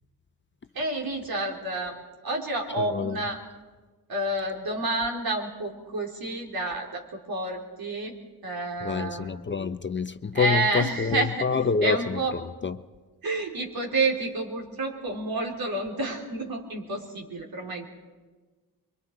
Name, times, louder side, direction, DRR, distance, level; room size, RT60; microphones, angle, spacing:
voice 1, 0.7-3.4 4.1-8.2 8.4-9.3 10.3-12.3 13.2-17.9, right 2 dB, 65° right, 3.8 m, -29 dB
voice 2, 2.8-3.2 8.8-12.8, left 6 dB, 30° left, 0.6 m, -27 dB
24.0 x 23.5 x 4.8 m
cardioid pair, 85°, 39 cm